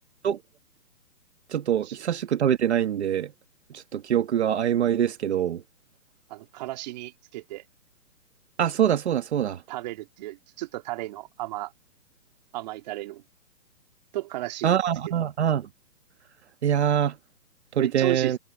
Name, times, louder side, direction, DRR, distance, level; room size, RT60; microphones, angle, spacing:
voice 1, 1.5-3.3 3.7-5.6 8.6-9.6 14.6-15.7 16.6-17.1 17.7-18.4, right 9 dB, 45° right, 1.8 m, -24 dB
voice 2, 6.3-7.6 9.7-11.7 12.5-13.2 14.1-14.8 17.8-18.3, right 17 dB, 25° right, 2.1 m, -34 dB
hypercardioid pair, 155°, 48 cm